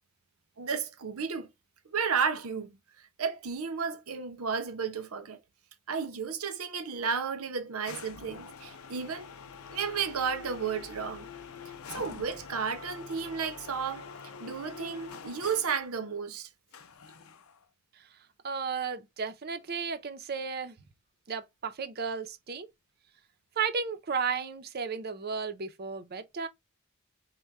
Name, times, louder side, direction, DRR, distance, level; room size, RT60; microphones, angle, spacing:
voice 1, 0.6-1.5 1.9-2.7 3.2-5.4 5.9-9.3 9.7-11.3 11.9-14.0 14.4-16.5, right 6 dB, 85° right, 0.8 m, -33 dB
sound 1, 7.8-15.9 16.7-17.6, left 5 dB, 80° left, 0.6 m, -46 dB
voice 2, 18.4-20.8 21.3-22.7 23.6-26.5, right 5 dB, 45° right, 0.6 m, -34 dB
4.3 x 2.2 x 3.4 m
head